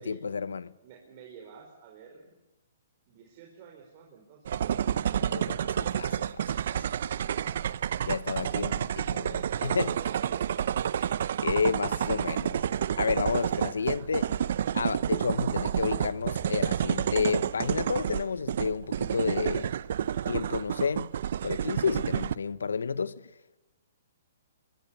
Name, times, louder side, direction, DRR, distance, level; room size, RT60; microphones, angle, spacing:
voice 1, 0.0-0.7 5.2-6.6 8.0-8.7 9.1-9.9 11.0-11.1 11.4-12.6 13.0-14.3 14.7-19.7 20.3-21.1 21.4-23.2, left 5 dB, 90° left, 1.0 m, -31 dB
voice 2, 0.8-2.3 3.1-4.9 7.2-7.6 8.2-8.8 9.5-10.5 13.3-14.3, right 7 dB, 40° right, 4.9 m, -49 dB
sound 1, 4.5-22.3, right 9 dB, 60° right, 0.7 m, -29 dB
sound 2, 11.7-18.3, right 1 dB, 20° left, 6.6 m, -50 dB
23.5 x 22.5 x 7.0 m
hypercardioid pair, 145°, 0 cm